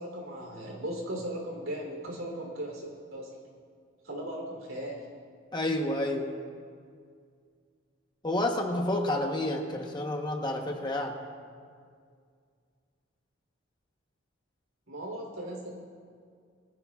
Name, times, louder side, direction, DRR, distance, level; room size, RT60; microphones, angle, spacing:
voice 1, 0.0-3.4 4.0-5.1 14.9-15.8, right 1 dB, 80° right, 0 dB, 3.3 m, -37 dB
voice 2, 5.5-6.3 8.2-11.1, left 1 dB, 20° left, 2 dB, 1.0 m, -29 dB
22.5 x 15.0 x 2.4 m, 2.1 s
head